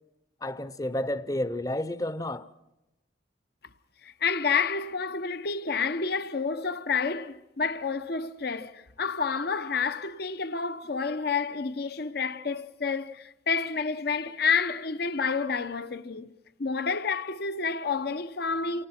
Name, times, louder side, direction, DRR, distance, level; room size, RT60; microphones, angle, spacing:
voice 1, 0.4-2.5, left 1 dB, 20° left, 0.7 m, -31 dB
voice 2, 4.0-16.3 16.6-18.9, left 5 dB, 60° left, 0.8 m, -29 dB
28.5 x 18.5 x 5.9 m
head